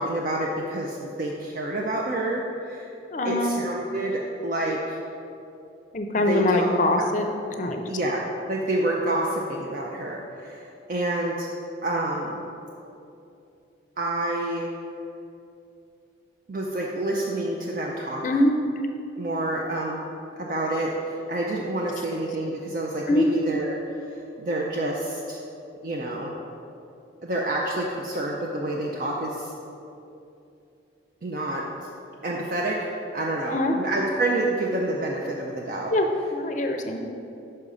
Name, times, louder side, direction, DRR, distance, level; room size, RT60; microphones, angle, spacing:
voice 1, 0.0-2.9 3.2-5.0 6.1-6.7 7.9-8.2 8.5-11.5 11.8-12.4 14.0-14.7 16.5-18.2 19.2-20.1 20.4-25.4 25.8-26.3 27.2-29.5 31.2-31.6 32.2-35.9, right 1 dB, 50° right, -2 dB, 0.5 m, -28 dB
voice 2, 3.1-3.5 5.9-7.3 7.6-7.8 18.2-18.6 23.1-23.2 33.5-33.8 35.9-37.0, left 1 dB, 40° left, 5 dB, 0.5 m, -23 dB
5.6 x 5.4 x 4.9 m, 2.8 s
head